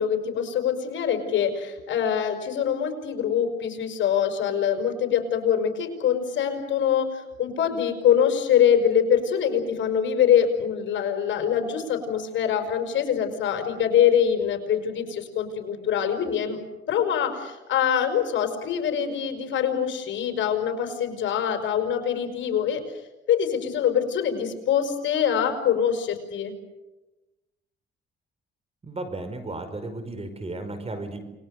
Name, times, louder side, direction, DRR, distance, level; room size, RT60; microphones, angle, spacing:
voice 1, 0.0-16.6 16.9-22.8 23.3-26.5, left 8 dB, 70° left, 6 dB, 5.5 m, -24 dB
voice 2, 28.8-31.2, right 2 dB, 30° right, 10 dB, 5.1 m, -34 dB
29.0 x 21.0 x 6.6 m, 1.1 s
cardioid pair, 90°, 20 cm